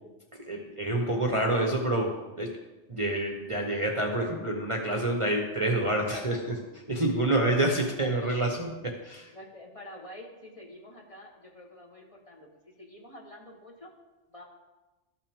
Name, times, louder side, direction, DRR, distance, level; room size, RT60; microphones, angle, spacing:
voice 1, 0.4-2.6 2.9-9.3, right 1 dB, 30° right, 1 dB, 0.9 m, -28 dB
voice 2, 9.3-13.9 14.3-14.4, left 1 dB, 30° left, -1 dB, 1.3 m, -47 dB
13.5 x 5.8 x 3.5 m, 1.1 s
omnidirectional pair, 1.2 m